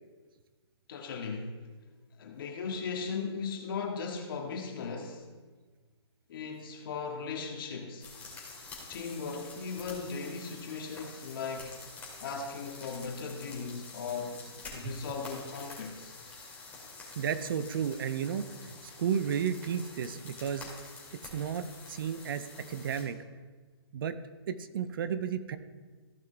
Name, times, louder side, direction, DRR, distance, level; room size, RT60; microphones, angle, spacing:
voice 1, 0.9-1.7 2.2-5.3 6.3-8.1 8.9-11.8 12.2-14.4 14.7-16.2, left 5 dB, 50° left, 2 dB, 1.8 m, -37 dB
sound 1, 8.0-23.0, left 3 dB, 10° left, 2.7 m, -48 dB
voice 2, 17.2-20.7 21.3-23.2 23.9-24.2 24.5-25.6, right 8 dB, 50° right, 12 dB, 0.7 m, -33 dB
15.0 x 5.8 x 3.4 m, 1.4 s
hypercardioid pair, 140°, 14 cm